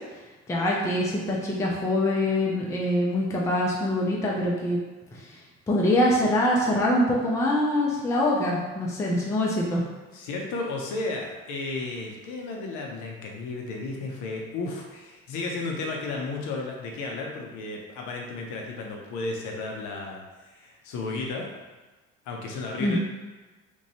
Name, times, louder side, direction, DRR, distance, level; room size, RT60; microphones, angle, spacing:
voice 1, 0.5-4.8 5.7-9.8 22.8-23.0, left 1 dB, 10° left, -3 dB, 0.4 m, -24 dB
voice 2, 10.1-21.5 22.2-23.0, left 3 dB, 50° left, 0 dB, 0.6 m, -33 dB
2.9 x 2.2 x 2.9 m, 1.2 s
figure-of-eight pair, 55°, 39 cm